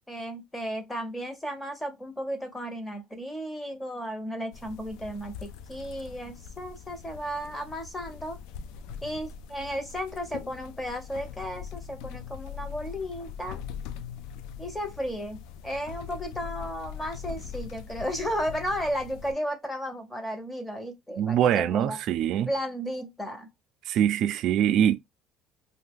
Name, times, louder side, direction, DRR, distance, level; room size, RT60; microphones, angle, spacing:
voice 1, 0.1-8.4 9.0-13.6 14.6-22.0 22.5-23.5, equal, 10° left, 0.8 m, -34 dB
sound 1, 4.5-19.3, left 7 dB, 85° left, 0.3 m, -42 dB
voice 2, 21.2-22.5 23.9-25.0, right 10 dB, 55° right, 0.4 m, -23 dB
2.7 x 2.2 x 3.5 m
cardioid pair, 150°, 0 cm